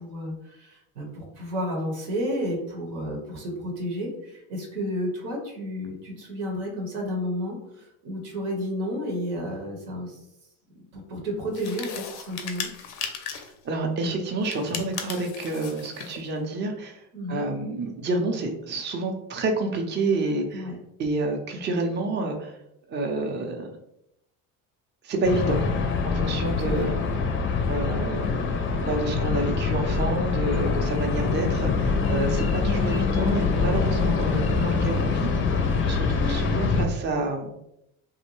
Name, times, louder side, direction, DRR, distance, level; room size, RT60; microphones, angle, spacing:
voice 1, 0.0-10.2 10.9-12.7 17.1-17.5 20.5-20.7 26.6-26.9, equal, 85° right, 0 dB, 1.0 m, -32 dB
sound 1, 11.5-13.6 14.4-16.2, left 7 dB, 85° left, 0.5 m, -36 dB
voice 2, 13.6-17.0 17.3-20.7 21.0-22.6 22.9-23.7 25.0-25.6 26.1-27.0 27.7-28.4 28.8-35.3 35.8-37.5, right 2 dB, 25° right, 2 dB, 0.5 m, -28 dB
sound 2, 25.2-36.9, left 4 dB, 30° left, 0.4 m, -24 dB
2.6 x 2.1 x 3.0 m, 0.81 s
supercardioid pair, 75°, 41 cm